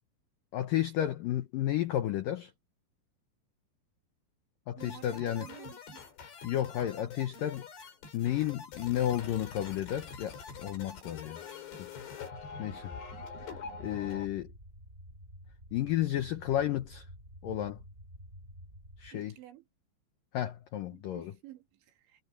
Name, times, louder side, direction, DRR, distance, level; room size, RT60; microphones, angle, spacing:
voice 1, 0.5-2.5 4.7-5.5 6.4-7.7 8.1-11.4 12.6-13.0 13.8-14.5 15.7-17.1 17.4-17.8 19.0-19.3 20.3-21.3, left 12 dB, 85° left, 1.9 m, -32 dB
sound 1, 4.8-14.3, left 5 dB, 65° left, 6.9 m, -45 dB
voice 2, 4.8-6.1 19.1-19.7 20.9-22.2, right 14 dB, 75° right, 4.4 m, -52 dB
sound 2, 12.4-19.1, equal, 50° right, 0.7 m, -51 dB
omnidirectional pair, 5.4 m